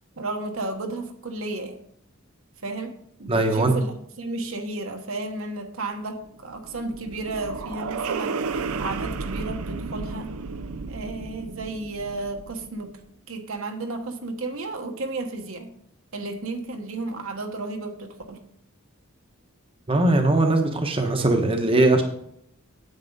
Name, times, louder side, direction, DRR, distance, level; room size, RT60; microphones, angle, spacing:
voice 1, 0.2-1.8 2.6-2.9 3.2-8.4 8.8-10.3 10.9-13.0 13.3-15.7 16.1-18.4, right 2 dB, 70° right, 4 dB, 1.2 m, -33 dB
voice 2, 3.3-3.7 19.9-22.0, right 2 dB, 25° right, 4 dB, 0.9 m, -20 dB
sound 1, 6.3-12.8, right 4 dB, 90° right, 0.6 m, -33 dB
9.2 x 8.2 x 4.0 m, 0.71 s
head